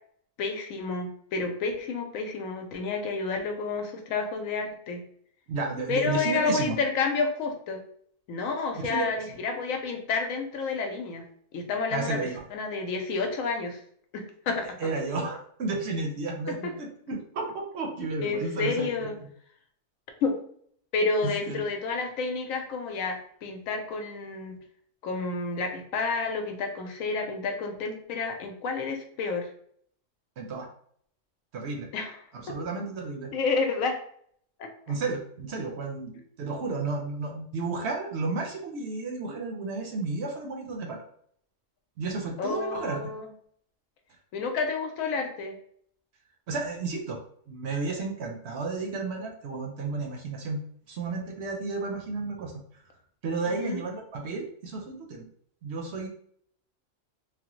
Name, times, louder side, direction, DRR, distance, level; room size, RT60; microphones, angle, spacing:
voice 1, 0.4-5.0 5.9-7.8 8.3-11.3 11.5-13.8 14.1-14.8 16.5-16.7 18.2-19.2 20.2-20.4 20.9-24.6 25.0-29.5 31.9-32.2 33.3-34.0 34.6-34.7 39.2-39.3 42.4-43.3 44.3-45.6 53.5-53.8, left 4 dB, 85° left, 4 dB, 1.0 m, -30 dB
voice 2, 5.5-6.8 8.7-9.4 11.9-12.4 14.8-19.1 21.2-21.7 30.4-30.7 31.5-31.9 32.3-33.3 34.9-41.0 42.0-43.0 46.5-47.2 47.5-50.6 50.9-52.5 53.2-55.2 55.6-56.1, right 3 dB, 65° right, 2 dB, 0.8 m, -32 dB
3.3 x 2.0 x 2.9 m, 0.63 s
omnidirectional pair, 1.4 m